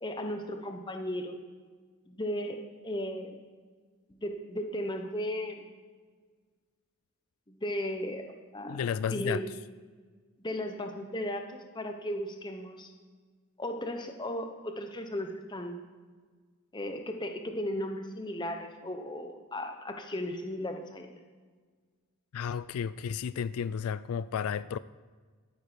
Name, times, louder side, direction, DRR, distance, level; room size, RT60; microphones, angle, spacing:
voice 1, 0.0-1.4 2.1-3.3 4.1-5.7 7.5-8.3 8.5-8.8 9.1-9.5 10.4-12.9 13.6-15.8 16.7-21.1, left 1 dB, 20° left, 0.9 m, -36 dB
voice 2, 8.7-9.4 22.3-24.8, left 7 dB, 75° left, 0.3 m, -32 dB
13.5 x 9.4 x 5.1 m
head